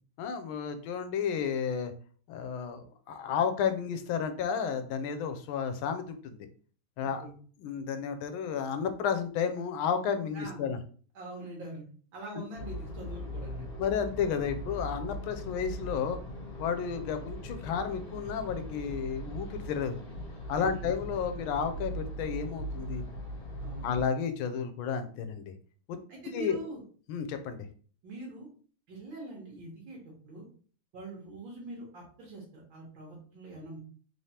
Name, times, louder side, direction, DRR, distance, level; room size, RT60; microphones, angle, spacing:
voice 1, 0.2-1.9 2.3-6.4 7.0-7.2 7.6-10.8 13.8-16.2 16.6-20.1 20.5-23.0 23.8-25.5 25.9-26.0 26.3-26.6 27.1-27.6, left 7 dB, 80° left, 8 dB, 1.4 m, -32 dB
voice 2, 7.0-7.3 10.3-10.7 11.2-11.8 12.1-13.7 20.5-20.9 23.6-24.1 26.1-26.8 28.0-28.5 28.9-30.5 30.9-33.8, right 2 dB, 70° right, -3 dB, 1.7 m, -43 dB
sound 1, 12.6-24.1, equal, 30° left, 1.8 m, -40 dB
3.7 x 3.2 x 2.7 m, 0.43 s
omnidirectional pair, 2.2 m